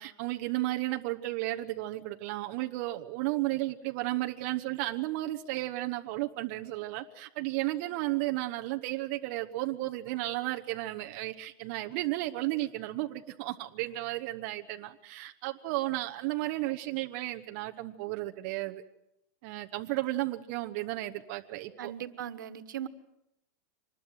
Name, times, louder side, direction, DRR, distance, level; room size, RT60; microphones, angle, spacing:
voice 1, 0.0-18.8 19.4-21.9, right 17 dB, 40° right, 4 dB, 1.0 m, -33 dB
voice 2, 21.8-22.9, right 10 dB, 85° right, 11 dB, 1.5 m, -38 dB
25.0 x 20.0 x 8.0 m, 0.82 s
supercardioid pair, 175°, 10 cm